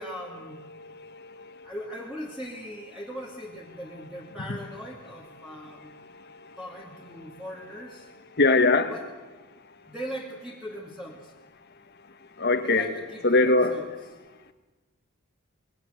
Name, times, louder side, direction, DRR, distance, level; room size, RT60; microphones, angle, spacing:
voice 1, 0.0-0.6 1.6-5.9 6.6-8.1 8.9-9.1 9.9-11.3 12.6-13.9, equal, 5° right, 2.4 m, -39 dB
voice 2, 0.7-1.7 4.5-4.6 5.4-6.6 7.2-7.4 8.3-8.9 12.0-12.9 13.2-13.8, left 3 dB, 50° left, 1.8 m, -25 dB
26.5 x 21.0 x 8.1 m
head